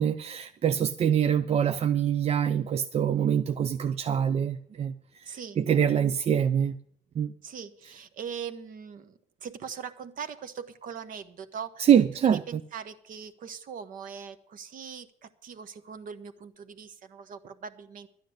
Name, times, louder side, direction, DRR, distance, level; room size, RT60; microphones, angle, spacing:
voice 1, 0.0-5.3 5.6-6.8 7.2-7.3 11.8-12.4, right 9 dB, 35° right, 0.5 m, -24 dB
voice 2, 5.2-5.6 7.4-11.9 12.2-18.1, right 7 dB, 55° right, 1.1 m, -41 dB
12.0 x 9.8 x 6.5 m
cardioid pair, 110°, 17 cm